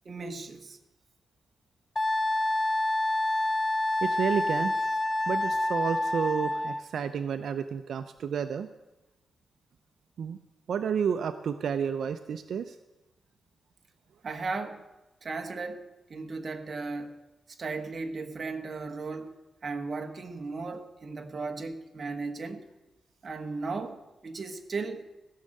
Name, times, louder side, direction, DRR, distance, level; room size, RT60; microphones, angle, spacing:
voice 1, 0.0-0.8 14.2-14.9 15.2-17.2 17.5-19.3 19.6-22.6 23.2-25.1, right 3 dB, 35° right, 5 dB, 1.2 m, -36 dB
Wind instrument woodwind instrument, 2.0-6.8, left 1 dB, 20° left, 0.5 m, -27 dB
voice 2, 4.0-5.0 5.3-8.7 10.2-10.4 10.7-12.8, right 7 dB, 70° right, 10 dB, 0.5 m, -31 dB
16.0 x 6.5 x 8.8 m, 1.1 s
wide cardioid pair, 150°, 0 cm